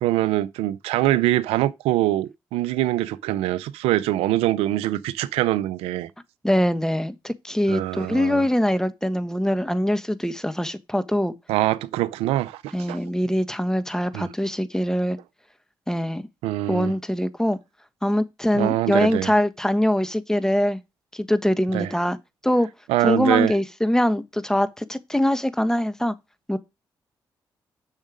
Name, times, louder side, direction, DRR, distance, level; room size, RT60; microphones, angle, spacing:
voice 1, 0.0-6.1 7.7-8.4 11.5-13.0 14.1-14.3 16.4-16.9 18.6-19.3 21.7-21.9 22.9-23.6, right 15 dB, 90° right, 0.5 m, -23 dB
voice 2, 6.4-11.3 12.7-15.2 15.9-16.3 16.7-17.6 18.0-20.8 21.1-22.2 22.4-22.7 23.0-26.1 26.5-26.6, equal, 5° left, 1.3 m, -23 dB
7.2 x 6.5 x 5.1 m
hypercardioid pair, 45°, 10 cm